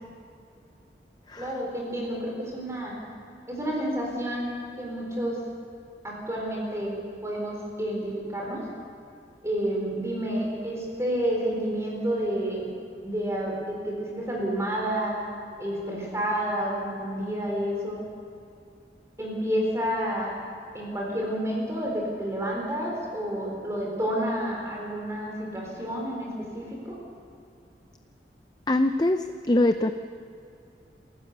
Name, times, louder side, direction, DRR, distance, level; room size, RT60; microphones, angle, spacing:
voice 1, 1.4-2.9 3.5-4.5 4.8-5.4 6.0-6.9 7.2-8.6 9.4-12.7 13.0-15.2 15.6-18.0 19.2-20.3 20.7-26.3 26.5-26.9, equal, 15° right, -2 dB, 4.4 m, -29 dB
voice 2, 28.7-29.2 29.5-29.9, left 1 dB, 25° left, 8 dB, 0.5 m, -22 dB
28.0 x 15.5 x 6.8 m, 2.6 s
head